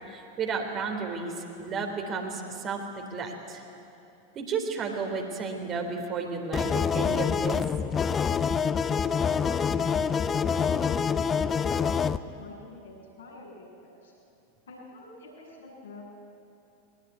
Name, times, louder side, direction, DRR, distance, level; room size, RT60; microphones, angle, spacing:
voice 1, 0.1-3.6 4.3-7.6, right 4 dB, 30° right, 3 dB, 3.6 m, -33 dB
sound 1, 6.5-12.2, left 6 dB, 20° left, 0.7 m, -26 dB
voice 2, 9.5-14.1 14.7-16.0, left 2 dB, 70° left, -3 dB, 7.8 m, -47 dB
22.5 x 20.0 x 9.6 m, 2.7 s
figure-of-eight pair, 85°, 0 cm